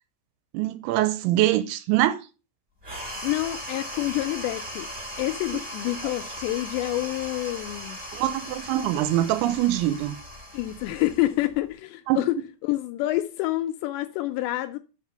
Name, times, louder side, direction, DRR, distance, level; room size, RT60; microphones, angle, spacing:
voice 1, 0.5-2.2 8.1-10.2 12.1-12.2, right 14 dB, 90° right, 3.1 m, -23 dB
sound 1, 2.8-11.7, equal, 10° right, 3.8 m, -38 dB
voice 2, 3.0-4.9 5.2-8.0 10.5-12.4 12.6-14.8, left 16 dB, 85° left, 2.6 m, -28 dB
6.1 x 5.8 x 6.5 m
omnidirectional pair, 5.4 m